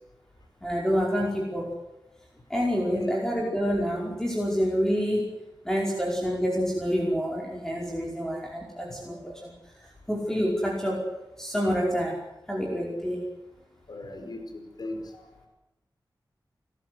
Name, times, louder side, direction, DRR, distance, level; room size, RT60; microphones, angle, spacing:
voice 1, 0.6-1.7 2.5-5.3 5.6-9.5 9.8-11.0 11.4-12.2 12.5-13.3, equal, 5° left, -2 dB, 5.0 m, -27 dB
voice 2, 13.9-15.3, left 2 dB, 65° left, 5 dB, 5.1 m, -39 dB
29.5 x 13.5 x 9.5 m, 0.99 s
wide cardioid pair, 105°, 8 cm